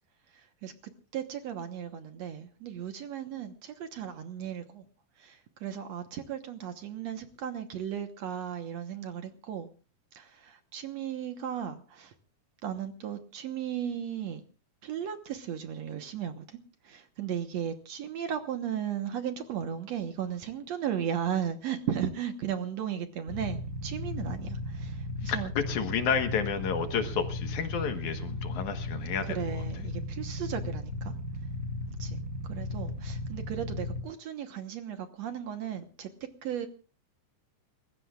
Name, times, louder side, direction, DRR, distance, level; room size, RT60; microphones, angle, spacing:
voice 1, 0.3-0.7 1.1-4.9 5.2-9.7 10.1-12.1 12.6-14.4 14.8-16.6 16.8-25.5 29.2-31.1 32.0-32.2 32.5-36.1 36.4-36.7, right 9 dB, 65° right, 7 dB, 2.1 m, -36 dB
Motorcycle / Idling, 23.3-34.0, left 2 dB, 25° right, 4.4 m, -36 dB
voice 2, 25.2-29.4, left 7 dB, 65° left, 8 dB, 2.6 m, -31 dB
30.0 x 15.5 x 2.4 m, 0.35 s
omnidirectional pair, 3.8 m